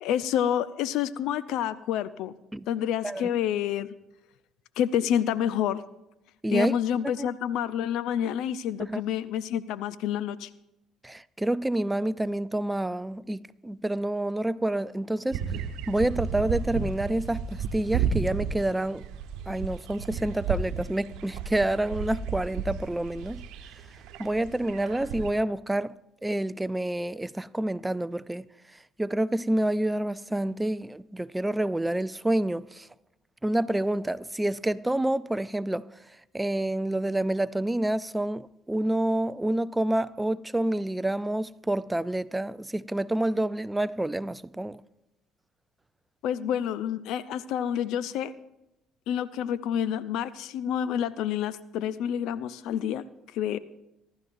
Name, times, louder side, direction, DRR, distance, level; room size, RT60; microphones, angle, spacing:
voice 1, 0.0-2.3 2.7-3.9 4.8-5.8 6.5-10.5 46.2-48.3 49.1-53.0 53.3-53.6, left 9 dB, 70° left, 0.5 m, -28 dB
voice 2, 6.4-6.8 7.0-7.3 8.8-9.0 11.0-15.5 15.9-19.0 19.5-23.4 24.2-25.9 26.2-28.5 29.0-32.9 33.4-35.9 36.3-44.8, right 1 dB, 10° right, 0.4 m, -28 dB
sound 1, 15.3-25.3, right 6 dB, 70° right, 1.0 m, -33 dB
25.5 x 12.0 x 2.6 m
hypercardioid pair, 60°, 0 cm